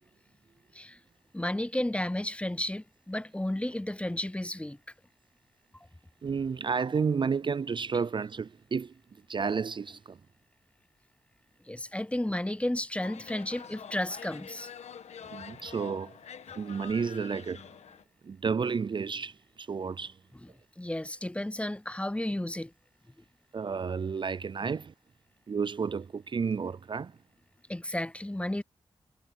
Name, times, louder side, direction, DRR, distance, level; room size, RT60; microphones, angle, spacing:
voice 1, 1.3-4.8 11.7-14.7 20.4-20.5 20.8-22.7 27.7-28.6, left 1 dB, 10° left, 0.7 m, -32 dB
voice 2, 6.2-8.9 9.3-10.2 15.2-16.2 16.6-17.6 18.2-20.2 23.5-24.9 25.5-27.1, right 5 dB, 45° right, 0.4 m, -31 dB
sound 1, 13.0-18.0, left 7 dB, 85° left, 1.3 m, -46 dB
cardioid pair, 45°, 11 cm